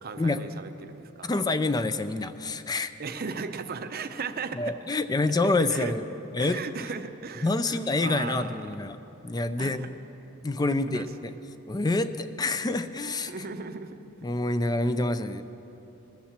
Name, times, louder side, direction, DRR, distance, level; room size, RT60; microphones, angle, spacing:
voice 1, 0.0-1.3 3.0-4.7 5.7-5.9 6.4-8.6 9.6-9.9 10.9-11.1 13.3-14.0, right 4 dB, 45° right, 9 dB, 0.7 m, -36 dB
voice 2, 1.2-2.9 4.5-6.0 6.3-6.6 7.4-9.0 9.2-9.8 10.4-11.3 11.7-13.3 14.2-15.4, left 2 dB, 20° left, 11 dB, 0.4 m, -27 dB
20.5 x 7.3 x 7.3 m, 3.0 s
head